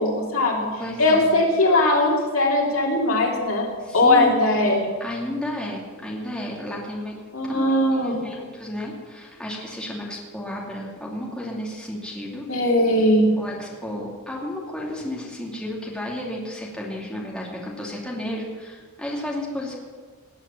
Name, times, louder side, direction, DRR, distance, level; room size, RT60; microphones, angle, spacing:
voice 1, 0.0-0.7 1.0-3.7 3.9-4.9 7.3-8.2 12.5-13.5, left 1 dB, 70° left, -1 dB, 3.0 m, -20 dB
voice 2, 0.8-1.4 3.8-4.3 5.0-7.2 7.4-12.5 13.4-19.7, left 1 dB, 5° left, -4 dB, 2.6 m, -32 dB
18.5 x 8.8 x 7.1 m, 1.5 s
head